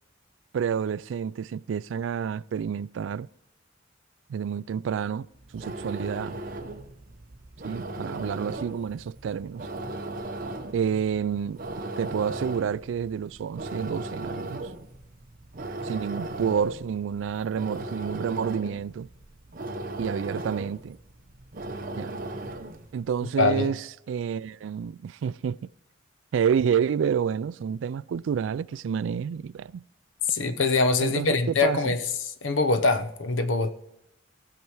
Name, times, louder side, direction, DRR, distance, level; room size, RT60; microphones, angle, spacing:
voice 1, 0.5-3.3 4.3-5.3 5.5-6.4 7.6-9.7 10.7-11.6 12.0-14.6 15.8-19.1 20.0-21.0 22.0-22.2 22.9-25.7 26.3-29.8 31.0-31.9, right 7 dB, 70° right, 0.3 m, -29 dB
sound 1, 5.3-22.9, right 2 dB, 45° right, 0.9 m, -37 dB
voice 2, 23.4-23.7 30.3-32.0 32.4-33.7, left 3 dB, 75° left, 0.9 m, -23 dB
18.5 x 6.8 x 4.6 m
head